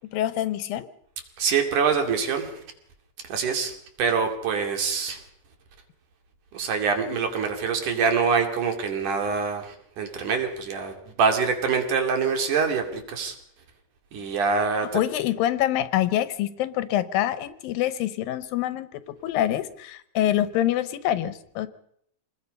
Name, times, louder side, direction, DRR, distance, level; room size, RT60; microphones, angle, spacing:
voice 1, 0.1-0.9 14.8-21.7, left 12 dB, 90° left, 14 dB, 2.8 m, -26 dB
voice 2, 1.4-2.6 3.3-5.2 6.5-13.4 14.1-14.9, right 5 dB, 65° right, 5 dB, 3.9 m, -25 dB
27.0 x 20.0 x 5.5 m, 0.69 s
omnidirectional pair, 4.0 m